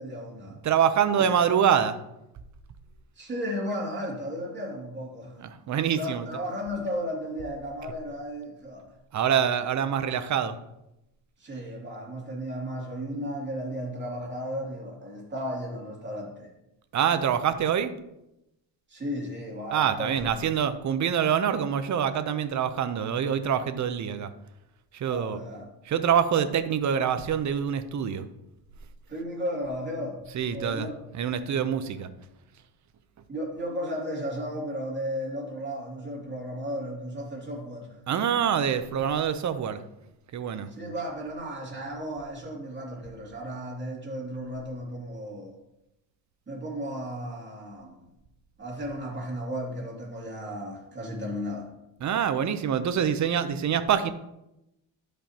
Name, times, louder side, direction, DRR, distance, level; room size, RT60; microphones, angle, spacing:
voice 1, 0.0-0.6 3.2-5.4 6.0-8.8 11.4-16.5 18.9-20.5 25.1-25.7 29.1-30.2 30.5-30.9 33.3-38.0 40.7-45.5 46.5-48.0 48.6-51.7, equal, 25° right, -2 dB, 2.7 m, -34 dB
voice 2, 0.6-2.0 5.4-6.3 9.1-10.6 16.9-17.9 19.7-24.3 24.9-25.4 25.9-28.3 30.3-32.1 38.1-39.8 40.3-40.7 52.0-54.1, right 8 dB, 40° right, 11 dB, 0.7 m, -25 dB
12.5 x 5.2 x 2.9 m, 0.88 s
cardioid pair, 105°, 46 cm